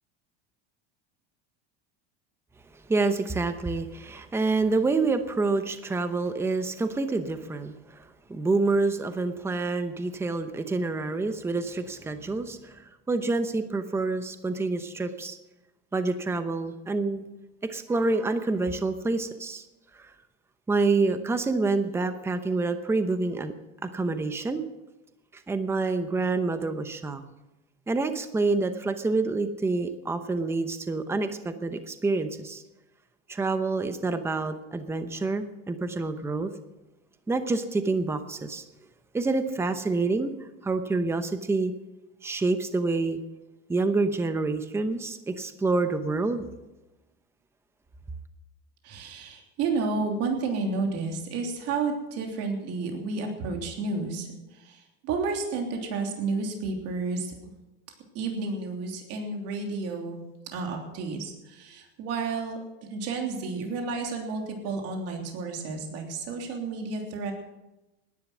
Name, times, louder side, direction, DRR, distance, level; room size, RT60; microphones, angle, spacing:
voice 1, 2.9-8.0 8.3-15.4 15.9-17.2 17.6-19.6 19.9-20.1 20.7-23.5 23.8-24.6 25.3-27.2 27.9-32.6 33.3-36.5 37.3-38.6 39.1-40.3 40.6-41.7 42.2-43.2 43.7-46.4, right 3 dB, 10° right, 9 dB, 0.8 m, -27 dB
voice 2, 48.8-54.3 54.6-57.3 58.1-60.2 60.5-62.6 62.9-67.3, right 4 dB, 50° right, 2 dB, 3.2 m, -31 dB
18.5 x 11.0 x 6.2 m, 1.0 s
supercardioid pair, 140°, 31 cm